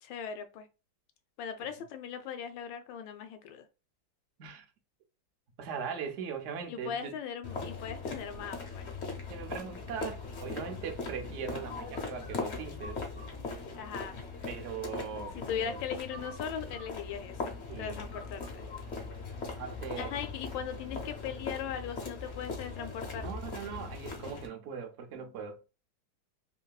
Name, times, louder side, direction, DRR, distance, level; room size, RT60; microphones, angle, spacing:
voice 1, 0.0-0.7 1.4-3.7 6.7-8.9 13.8-14.3 15.4-18.6 20.0-23.3, left 8 dB, 80° left, 1.2 m, -39 dB
voice 2, 5.6-7.1 9.3-13.0 14.5-15.8 17.7-18.2 19.5-20.1 23.2-25.6, right 6 dB, 75° right, 0.7 m, -40 dB
sound 1, 7.4-24.5, left 4 dB, 60° left, 0.7 m, -40 dB
3.1 x 2.6 x 2.3 m
omnidirectional pair, 2.0 m